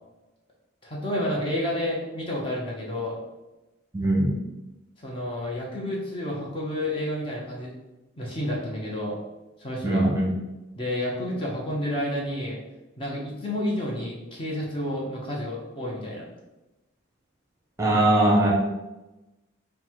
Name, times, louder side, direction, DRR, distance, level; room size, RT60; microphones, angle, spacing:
voice 1, 0.8-3.2 5.0-7.7 8.2-9.2 9.6-10.1 10.8-12.6 13.0-16.3 17.9-18.0, left 1 dB, 25° left, -3 dB, 0.7 m, -30 dB
voice 2, 3.9-4.3 9.8-10.3 17.8-18.5, right 1 dB, 15° right, -4 dB, 0.8 m, -20 dB
3.9 x 2.2 x 4.4 m, 1.0 s
head